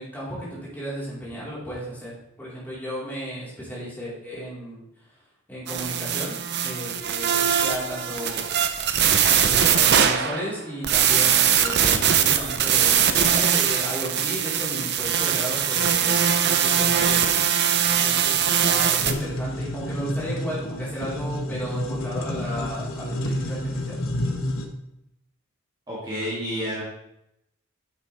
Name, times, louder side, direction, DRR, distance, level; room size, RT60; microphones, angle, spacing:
voice 1, 0.0-2.1 2.4-4.8 5.5-6.3 6.6-8.5 9.3-17.4 17.9-24.0, equal, 10° left, -8 dB, 4.1 m, -34 dB
sound 1, 5.7-10.6 10.8-19.1, right 8 dB, 50° right, 0.7 m, -21 dB
sound 2, 19.0-24.6, left 1 dB, 65° left, 1.2 m, -29 dB
voice 2, 25.9-26.8, equal, 20° right, -7 dB, 1.9 m, -29 dB
10.0 x 8.2 x 3.4 m, 0.82 s
head